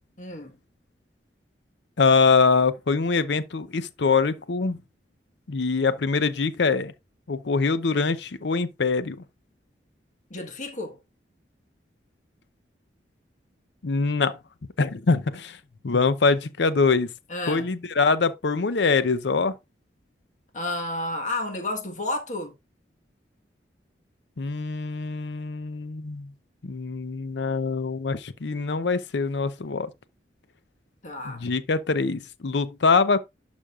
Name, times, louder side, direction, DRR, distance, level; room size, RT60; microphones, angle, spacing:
voice 1, 0.2-0.6 10.3-11.0 17.3-17.7 20.5-22.5 31.0-31.5, left 2 dB, 45° left, 1.5 m, -31 dB
voice 2, 2.0-4.8 5.5-6.9 7.3-9.2 13.8-14.4 14.8-15.6 15.8-17.1 17.5-19.5 24.4-26.3 26.6-29.9 31.3-33.2, left 4 dB, 80° left, 0.6 m, -23 dB
11.0 x 5.3 x 2.4 m
head